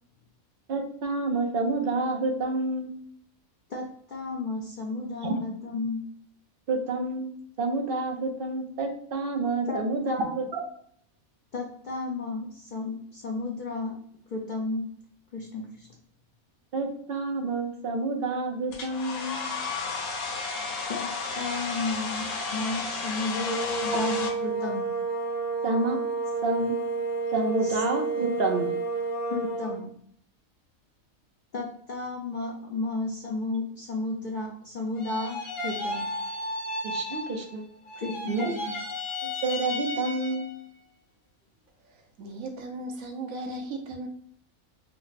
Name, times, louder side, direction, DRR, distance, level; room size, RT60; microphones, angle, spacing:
voice 1, 0.7-2.9 5.2-5.3 6.7-7.3 7.6-10.6 16.7-19.5 25.6-26.0 26.4-26.7 27.3-28.7 36.8-37.6 38.3-38.5 39.2-40.5, right 3 dB, 55° right, 2 dB, 0.7 m, -28 dB
voice 2, 3.7-6.0 9.7-10.4 11.5-14.0 14.3-14.8 15.3-15.9 20.9-21.1 21.4-24.9 27.6-27.8 29.3-29.9 31.5-36.1 38.0-38.8, left 3 dB, 65° left, -2 dB, 0.4 m, -33 dB
Domestic sounds home sounds, 18.7-24.3, left 4 dB, 80° left, 1.2 m, -33 dB
sound 1, 23.2-29.8, right 4 dB, 15° right, 1.0 m, -30 dB
sound 2, 35.0-37.6 37.9-40.6, left 2 dB, 40° left, 0.8 m, -34 dB
voice 3, 41.9-44.1, right 2 dB, 75° right, 3 dB, 1.1 m, -37 dB
3.3 x 2.0 x 3.9 m, 0.63 s
omnidirectional pair, 1.5 m